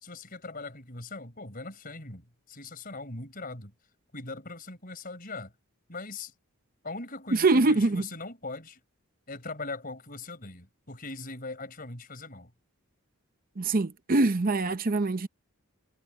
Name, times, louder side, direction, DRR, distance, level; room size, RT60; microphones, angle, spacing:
voice 1, 0.0-3.7 4.1-5.5 5.9-6.3 6.8-8.8 9.3-12.5, left 3 dB, 40° left, 4.7 m, -40 dB
voice 2, 7.3-8.0 13.6-15.3, right 2 dB, 40° right, 0.7 m, -24 dB
head